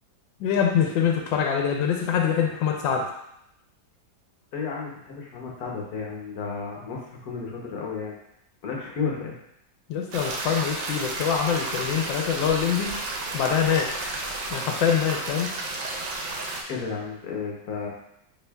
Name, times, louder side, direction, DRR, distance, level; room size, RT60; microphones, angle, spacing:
voice 1, 0.4-3.1 9.9-12.9 13.3-13.9 14.5-15.5, left 7 dB, 90° left, 2 dB, 1.4 m, -24 dB
voice 2, 4.5-8.2 8.6-9.3 16.7-17.9, left 5 dB, 60° left, -2 dB, 1.3 m, -32 dB
sound 1, 10.1-16.6, right 2 dB, 70° right, 1.4 m, -32 dB
6.5 x 3.4 x 2.3 m, 0.78 s
omnidirectional pair, 2.0 m